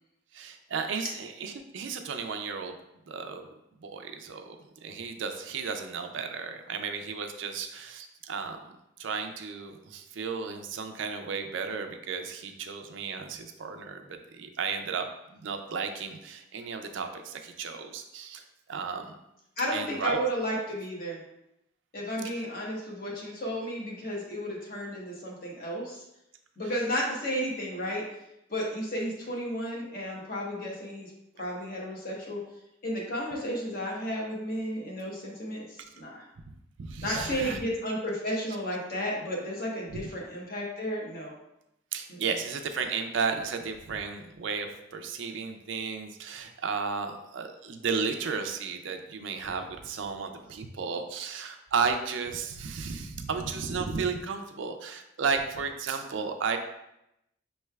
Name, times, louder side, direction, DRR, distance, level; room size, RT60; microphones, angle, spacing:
voice 1, 0.3-2.7 3.1-3.5 3.8-8.7 9.0-18.4 18.7-19.1 19.7-20.2 22.2-22.4 36.8-37.6 39.9-40.0 41.9-56.6, right 5 dB, 70° right, 6 dB, 0.4 m, -34 dB
voice 2, 19.6-21.2 21.9-26.0 26.6-28.0 28.5-32.4 32.8-36.2 37.0-41.3 42.1-42.4, equal, 45° left, -2 dB, 0.9 m, -33 dB
5.4 x 3.2 x 2.3 m, 0.85 s
head